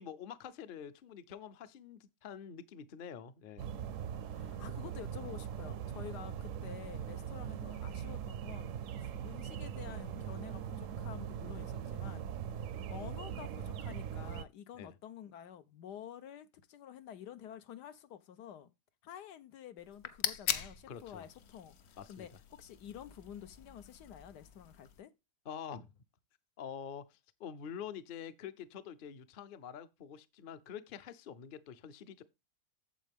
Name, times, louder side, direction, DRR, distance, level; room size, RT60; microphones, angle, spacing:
voice 1, 0.0-3.6 14.8-14.9 20.9-21.3 22.0-22.3 25.5-25.9 26.6-32.2, left 8 dB, 50° left, 0.6 m, -46 dB
sound 1, 3.6-14.4, right 8 dB, 65° right, 0.8 m, -41 dB
voice 2, 4.3-8.7 9.0-12.3 12.9-18.7 19.0-25.1, left 9 dB, 85° left, 1.4 m, -50 dB
sound 2, 19.8-25.0, left 9 dB, 70° left, 1.3 m, -41 dB
8.9 x 7.3 x 3.5 m
omnidirectional pair, 1.7 m